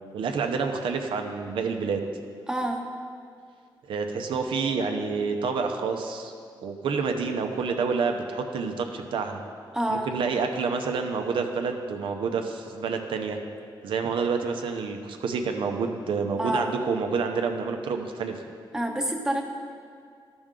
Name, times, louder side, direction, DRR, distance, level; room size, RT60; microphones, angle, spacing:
voice 1, 0.1-2.0 3.9-6.3 6.6-9.4 9.9-13.4 13.8-18.4, right 5 dB, 85° right, 5 dB, 0.8 m, -28 dB
voice 2, 2.5-2.8 9.7-10.1 16.4-16.7 18.7-19.4, right 1 dB, 10° right, 2 dB, 0.8 m, -27 dB
12.0 x 6.1 x 3.8 m, 2.2 s
wide cardioid pair, 135°, 8 cm